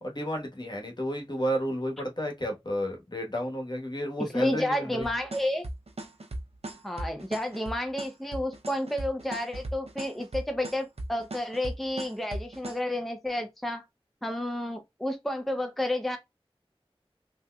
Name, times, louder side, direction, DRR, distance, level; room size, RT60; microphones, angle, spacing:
voice 1, 0.0-5.1, equal, 45° left, 1.2 m, -31 dB
voice 2, 4.2-5.7 6.8-13.8 14.2-16.2, left 1 dB, ahead, 0.6 m, -31 dB
sound 1, 5.0-12.8, right 1 dB, 85° right, 0.6 m, -37 dB
3.5 x 2.8 x 2.2 m
wide cardioid pair, 45°, 10 cm